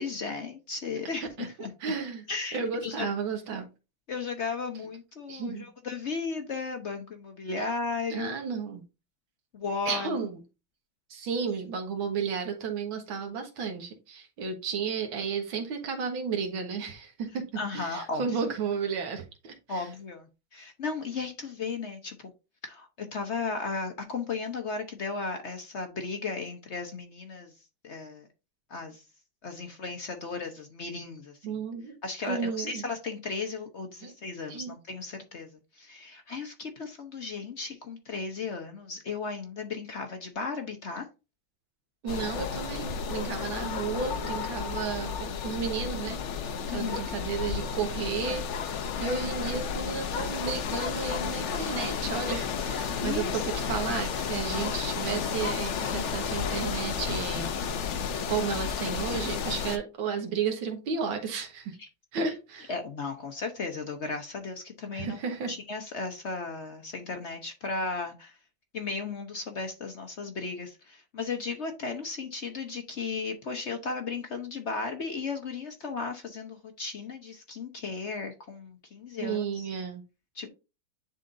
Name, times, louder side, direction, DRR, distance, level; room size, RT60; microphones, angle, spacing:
voice 1, 0.0-1.7 2.3-3.1 4.1-8.3 9.5-10.2 17.6-18.4 19.7-22.3 22.6-27.5 27.8-28.3 28.7-29.0 29.4-31.6 32.0-35.5 35.7-41.1 46.7-47.0 53.0-53.4 61.8-61.9 62.2-62.4 62.7-65.2 65.5-68.4 68.7-79.7 80.3-80.5, left 4 dB, 55° left, 0.8 m, -35 dB
voice 2, 1.2-2.2 2.5-3.7 5.3-5.7 7.6-7.7 8.1-8.8 9.9-10.4 11.1-17.4 17.7-19.9 31.4-32.0 32.3-32.8 34.0-34.1 34.5-34.7 42.0-48.5 49.0-57.9 58.3-61.7 62.1-62.7 64.9-65.5 79.2-80.0, right 6 dB, 85° right, 2.1 m, -33 dB
sound 1, 42.1-59.8, left 6 dB, 85° left, 0.6 m, -32 dB
10.5 x 3.8 x 2.6 m
omnidirectional pair, 2.1 m